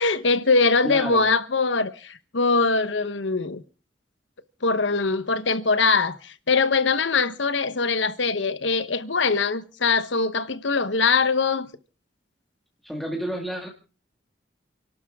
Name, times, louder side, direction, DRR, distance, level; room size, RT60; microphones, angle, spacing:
voice 1, 0.0-3.6 4.6-11.7, left 4 dB, 75° left, 1.1 m, -22 dB
voice 2, 0.8-1.3 12.8-13.7, equal, ahead, 2.1 m, -30 dB
29.5 x 12.0 x 3.6 m
head